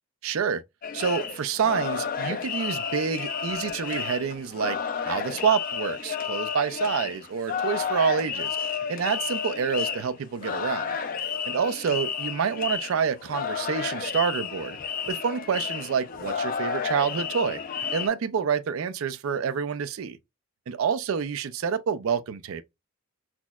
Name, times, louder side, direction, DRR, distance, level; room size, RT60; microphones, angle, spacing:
voice 1, 0.2-0.6 0.9-4.8 5.0-8.6 8.9-11.0 11.5-14.8 15.1-17.6 17.9-20.2 20.7-22.6, right 6 dB, 65° right, 0.4 m, -27 dB
sound 1, 0.8-18.1, left 6 dB, 40° left, 0.4 m, -31 dB
5.9 x 2.0 x 2.3 m
head